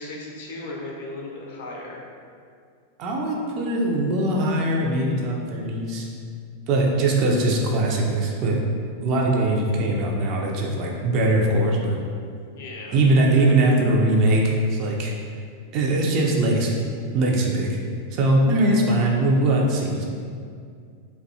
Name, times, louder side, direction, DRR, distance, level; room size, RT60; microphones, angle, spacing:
voice 1, 0.0-2.1 12.6-13.0, left 2 dB, 55° left, -2 dB, 0.4 m, -36 dB
voice 2, 3.0-6.1 6.7-8.6 9.0-12.0 12.9-15.1 15.7-16.7 17.1-17.8 18.1-20.0, right 1 dB, 40° right, -1 dB, 0.3 m, -21 dB
2.3 x 2.1 x 2.7 m, 2.3 s
figure-of-eight pair, 90°, 0 cm